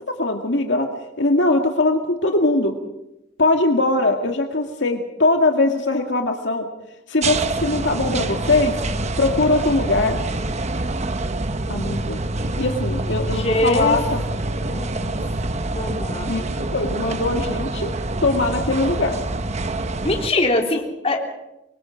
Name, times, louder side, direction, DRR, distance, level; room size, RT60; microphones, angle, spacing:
voice 1, 0.1-0.9 1.2-2.8 3.4-6.7 7.1-8.7 9.2-10.2 11.7-12.2 12.6-14.2 16.3-16.4 16.7-17.9 18.2-19.2, left 2 dB, 75° left, 3 dB, 1.9 m, -21 dB
sound 1, 7.2-20.3, right 2 dB, 40° right, 1.0 m, -26 dB
voice 2, 13.3-14.0 14.7-15.2 15.7-16.5 20.0-21.3, left 1 dB, 35° left, 1 dB, 3.6 m, -23 dB
26.0 x 23.5 x 5.1 m, 0.91 s
head